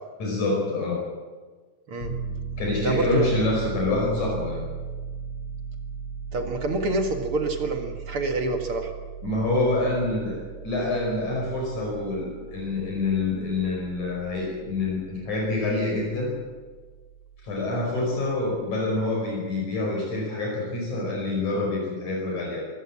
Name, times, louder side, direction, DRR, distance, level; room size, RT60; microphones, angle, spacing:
voice 1, 0.2-1.0 2.6-4.6 9.2-16.3 17.4-22.7, left 2 dB, 60° left, -2 dB, 6.6 m, -26 dB
Piano, 2.0-18.7, right 5 dB, 40° left, 4.2 m, -38 dB
voice 2, 2.8-3.3 6.3-8.9, right 2 dB, 45° right, 4 dB, 2.5 m, -27 dB
24.0 x 16.0 x 7.6 m, 1.4 s
omnidirectional pair, 3.8 m